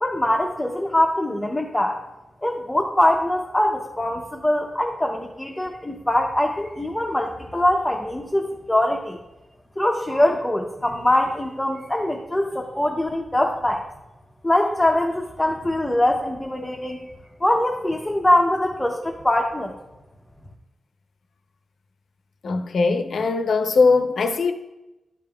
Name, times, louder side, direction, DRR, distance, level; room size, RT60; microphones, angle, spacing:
voice 1, 0.0-2.0 2.4-9.2 9.8-13.9 14.4-17.1 17.4-19.7, left 1 dB, 10° left, 0.6 m, -22 dB
voice 2, 22.4-24.5, left 4 dB, 70° left, 0.5 m, -20 dB
12.0 x 5.2 x 2.3 m
wide cardioid pair, 175°, 0 cm